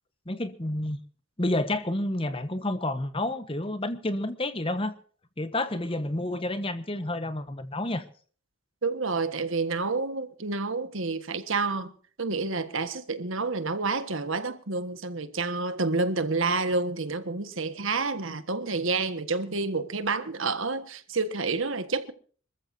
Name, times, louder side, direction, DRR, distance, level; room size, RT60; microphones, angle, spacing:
voice 1, 0.3-1.0 1.4-4.9 5.4-8.0, left 1 dB, 25° left, 1.2 m, -29 dB
voice 2, 8.8-11.9 12.2-22.1, right 3 dB, 70° right, 1.5 m, -29 dB
25.5 x 14.5 x 2.8 m
head